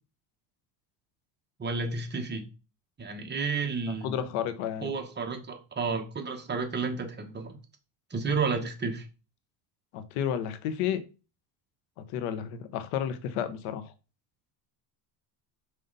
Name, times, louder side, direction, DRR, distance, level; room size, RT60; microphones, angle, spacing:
voice 1, 1.6-2.5 3.0-4.1 4.8-7.6 8.1-9.1, right 4 dB, 20° right, 1.3 m, -31 dB
voice 2, 4.0-4.9 9.9-11.0 12.0-13.9, left 9 dB, 85° left, 1.1 m, -32 dB
5.6 x 5.0 x 4.0 m
cardioid pair, 125°, 47 cm